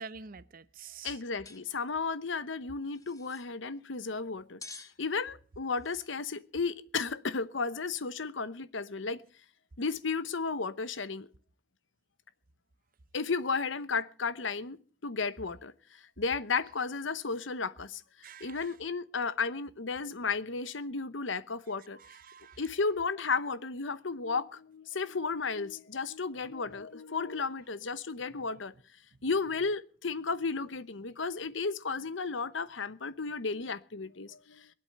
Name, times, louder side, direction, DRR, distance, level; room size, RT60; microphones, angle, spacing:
voice 1, 0.0-1.2 18.2-18.7 21.9-22.6, right 5 dB, 45° right, 0.7 m, -47 dB
voice 2, 1.0-9.2 9.8-11.3 13.1-14.8 15.0-18.0 18.4-22.0 22.6-28.7 29.2-34.7, left 4 dB, 70° left, 0.9 m, -34 dB
sound 1, 1.4-1.6 1.9-2.0 2.8-3.5 4.6-4.9 5.8-6.1, left 3 dB, 20° left, 1.3 m, -49 dB
22.5 x 8.3 x 6.7 m
head